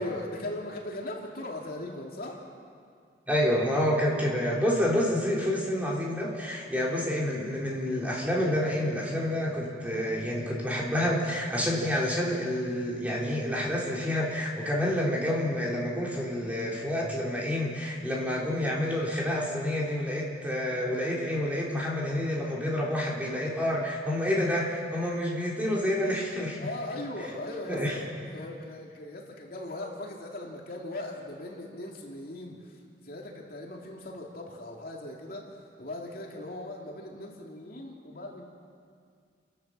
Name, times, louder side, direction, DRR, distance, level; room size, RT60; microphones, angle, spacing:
voice 1, 0.0-2.4 26.6-32.8 33.0-35.5 35.8-38.5, left 1 dB, 50° left, -1 dB, 2.8 m, -39 dB
voice 2, 3.3-26.7 27.7-28.0, left 1 dB, 10° right, -4 dB, 3.4 m, -28 dB
30.0 x 12.0 x 7.5 m, 2.2 s
head